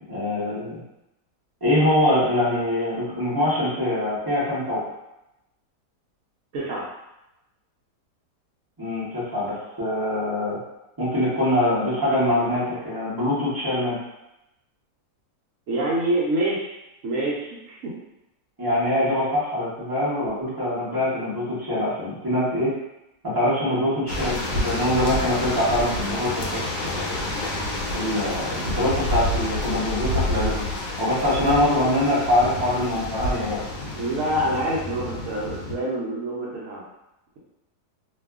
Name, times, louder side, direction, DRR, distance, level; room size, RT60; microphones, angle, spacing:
voice 1, 0.1-0.8 1.6-4.8 8.8-10.6 11.0-14.0 18.6-22.7 23.2-27.2 27.9-30.6 31.0-33.6, left 1 dB, 30° right, -10 dB, 0.4 m, -24 dB
voice 2, 6.5-6.8 15.7-16.7 17.0-17.9 33.9-36.8, right 1 dB, 65° right, -5 dB, 0.8 m, -26 dB
sound 1, 24.1-35.7, left 1 dB, 80° left, 1.1 m, -29 dB
2.7 x 2.3 x 2.3 m, 0.91 s
omnidirectional pair, 1.8 m